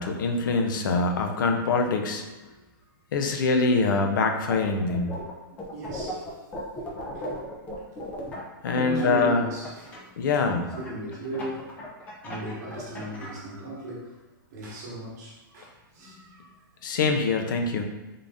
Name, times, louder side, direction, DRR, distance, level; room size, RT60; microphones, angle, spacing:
voice 1, 0.0-2.3 3.1-5.1 8.6-9.4 10.2-10.7 16.8-17.8, left 4 dB, 60° left, 4 dB, 0.5 m, -24 dB
sound 1, 4.5-5.3 5.6-10.0 10.7-13.4, left 1 dB, 10° left, 0.4 m, -37 dB
voice 2, 5.4-6.4 7.1-7.3 8.7-10.5 10.8-11.7 12.2-14.1 14.5-16.6, right 2 dB, 50° right, -5 dB, 1.1 m, -36 dB
3.8 x 2.5 x 3.4 m, 1.1 s
hypercardioid pair, 165°, 12 cm